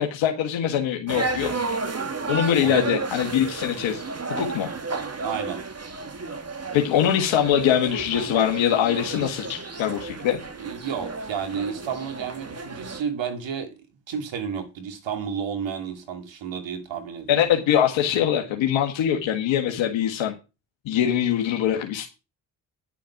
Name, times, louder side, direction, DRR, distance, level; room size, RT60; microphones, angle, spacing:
voice 1, 0.0-1.5 2.3-4.0 4.3-4.7 6.7-10.4 17.3-20.3 20.8-22.1, left 10 dB, 85° left, 1.7 m, -23 dB
sound 1, 1.1-13.0, right 3 dB, 35° right, 2.0 m, -32 dB
voice 2, 2.6-3.0 5.2-5.6 10.6-17.5, right 7 dB, 75° right, 2.5 m, -31 dB
10.5 x 7.1 x 5.8 m
supercardioid pair, 45°, 45 cm